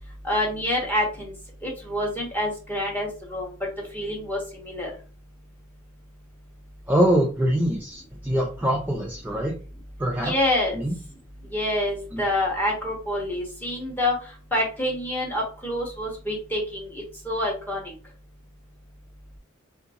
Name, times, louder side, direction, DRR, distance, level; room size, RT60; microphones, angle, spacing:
voice 1, 0.2-1.3 1.6-3.5 3.9-4.9 10.2-10.8 11.5-14.2 14.5-17.9, left 1 dB, 10° left, -2 dB, 0.9 m, -27 dB
voice 2, 6.9-9.5 10.0-10.3 10.7-10.9 12.1-12.2, equal, 10° right, -2 dB, 0.4 m, -23 dB
2.7 x 2.6 x 2.5 m, 0.37 s
head